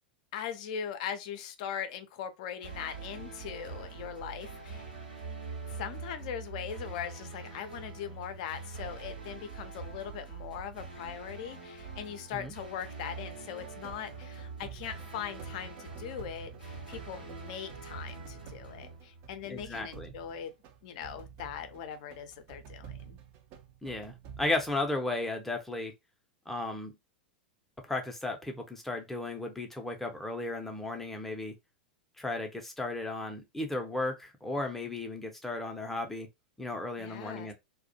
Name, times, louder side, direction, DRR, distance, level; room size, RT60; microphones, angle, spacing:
voice 1, 0.3-4.9 5.7-20.5 20.8-23.2 37.0-37.5, left 8 dB, 50° left, 0.4 m, -40 dB
sound 1, 2.6-19.7, right 4 dB, 80° right, 0.9 m, -44 dB
sound 2, 13.6-25.0, right 8 dB, 45° right, 0.5 m, -50 dB
voice 2, 19.5-20.1 23.8-25.9 26.5-26.9 27.9-31.5 32.2-36.3 36.6-37.5, left 2 dB, 5° left, 0.5 m, -35 dB
2.3 x 2.1 x 2.6 m
figure-of-eight pair, 90°, 5 cm